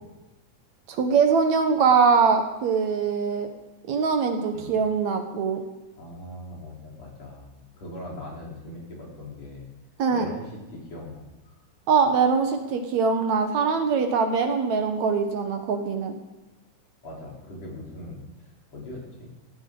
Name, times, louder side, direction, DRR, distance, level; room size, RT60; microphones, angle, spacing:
voice 1, 0.9-3.5 3.9-5.6 10.0-10.3 11.9-16.1, right 5 dB, 70° right, 5 dB, 2.5 m, -22 dB
voice 2, 6.0-9.7 10.1-11.6 17.0-19.3, left 1 dB, 60° left, -3 dB, 5.2 m, -40 dB
17.0 x 16.0 x 4.0 m, 1.1 s
omnidirectional pair, 3.4 m